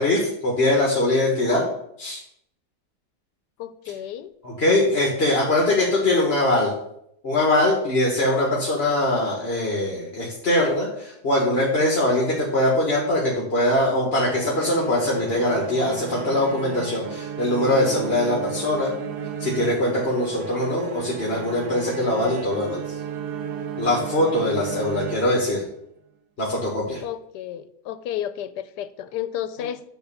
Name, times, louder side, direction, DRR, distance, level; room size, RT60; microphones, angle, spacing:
voice 1, 0.0-1.7 2.0-2.2 4.4-6.7 7.2-18.9 19.4-22.9 23.8-25.6 26.4-27.0, left 1 dB, 40° left, -3 dB, 1.7 m, -22 dB
voice 2, 3.6-4.3 24.5-25.0 27.0-29.8, left 11 dB, 85° left, 13 dB, 1.2 m, -32 dB
sound 1, 14.3-25.8, right 7 dB, 75° right, 1.3 m, -34 dB
10.0 x 3.5 x 6.8 m, 0.75 s
omnidirectional pair, 1.7 m